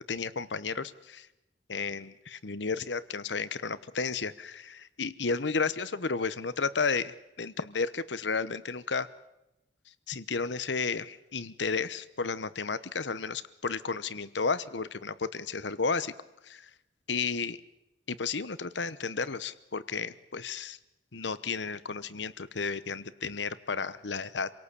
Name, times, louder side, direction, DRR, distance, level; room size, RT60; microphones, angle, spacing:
voice 1, 0.1-1.3 1.7-9.1 10.1-16.1 16.4-16.7 17.1-17.6 18.1-20.8 21.1-24.5, left 4 dB, 80° left, 16 dB, 1.0 m, -32 dB
27.0 x 18.0 x 8.4 m, 0.95 s
head